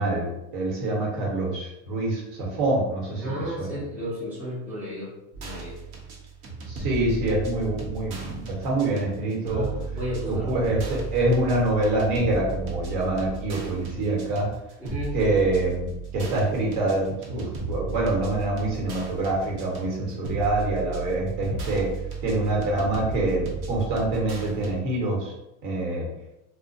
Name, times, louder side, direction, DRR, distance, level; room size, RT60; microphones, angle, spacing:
voice 1, 0.0-3.2 3.6-3.7 6.7-9.7 10.3-14.5 15.1-15.9 16.1-21.9 22.2-25.3 25.6-26.1, right 2 dB, 55° right, -2 dB, 1.1 m, -25 dB
voice 2, 3.2-5.8 9.5-10.6 14.1-14.2 14.8-15.2, equal, 5° right, -8 dB, 0.4 m, -33 dB
sound 1, 5.3-24.8, right 4 dB, 75° right, 0.9 m, -35 dB
2.2 x 2.1 x 2.6 m, 0.90 s
supercardioid pair, 150°, 43 cm